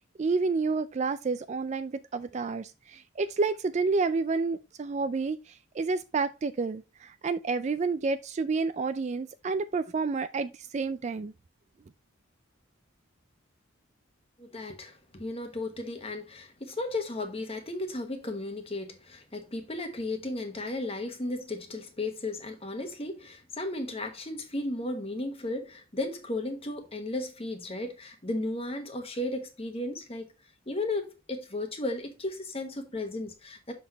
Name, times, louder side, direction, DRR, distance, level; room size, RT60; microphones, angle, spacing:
voice 1, 0.2-11.3, right 4 dB, 35° right, 0.3 m, -29 dB
voice 2, 14.4-30.3 30.7-33.7, left 2 dB, 30° left, 1.2 m, -35 dB
6.4 x 5.9 x 2.9 m
head